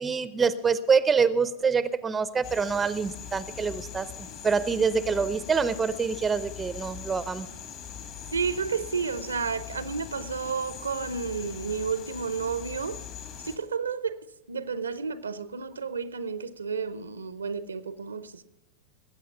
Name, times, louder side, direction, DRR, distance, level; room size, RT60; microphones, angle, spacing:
voice 1, 0.0-7.5, right 5 dB, 15° right, 0.6 m, -26 dB
sound 1, 2.4-13.6, left 8 dB, 40° left, 2.1 m, -41 dB
voice 2, 8.3-13.0 13.4-14.2 14.5-18.4, right 5 dB, 75° right, 0.7 m, -31 dB
20.0 x 8.5 x 5.8 m
figure-of-eight pair, 90°, 0 cm